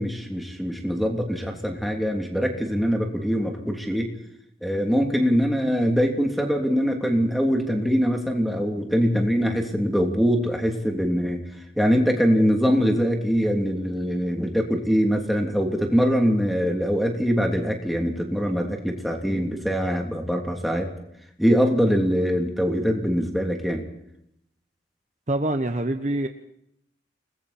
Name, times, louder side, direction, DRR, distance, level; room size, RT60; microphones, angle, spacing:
voice 1, 0.0-4.1 4.6-11.4 11.8-20.9 21.4-23.8, equal, ahead, 1 dB, 3.0 m, -23 dB
voice 2, 25.3-26.3, right 1 dB, 40° right, 7 dB, 1.1 m, -25 dB
29.5 x 21.0 x 4.4 m, 0.76 s
head